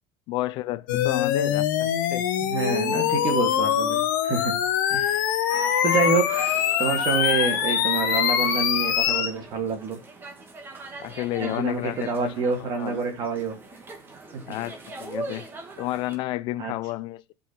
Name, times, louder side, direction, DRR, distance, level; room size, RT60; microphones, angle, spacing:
voice 1, 0.3-2.3 2.9-3.2 11.0-12.3 12.6-13.0 14.4-15.5 15.8-17.3, left 17 dB, 50° left, 0.7 m, -31 dB
sound 1, 0.9-9.3, left 10 dB, 85° left, 1.7 m, -23 dB
voice 2, 2.4-4.5 4.9-10.0 11.4-13.6 14.3-14.6 16.6-16.7, right 5 dB, 40° right, 3.2 m, -27 dB
sound 2, 5.5-16.2, right 3 dB, 20° right, 2.2 m, -40 dB
13.0 x 5.5 x 4.6 m
supercardioid pair, 135°, 10 cm